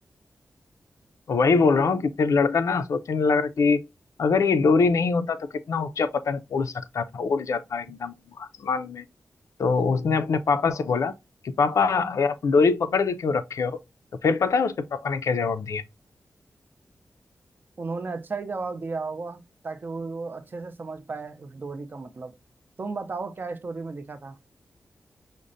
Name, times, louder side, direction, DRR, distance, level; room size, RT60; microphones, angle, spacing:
voice 1, 1.3-3.8 4.2-9.0 9.6-11.1 11.4-13.8 14.2-15.8, left 4 dB, 70° left, 0.4 m, -23 dB
voice 2, 17.8-22.3 22.8-24.4, right 4 dB, 40° right, 0.4 m, -34 dB
5.0 x 2.1 x 2.5 m
wide cardioid pair, 120°, 5 cm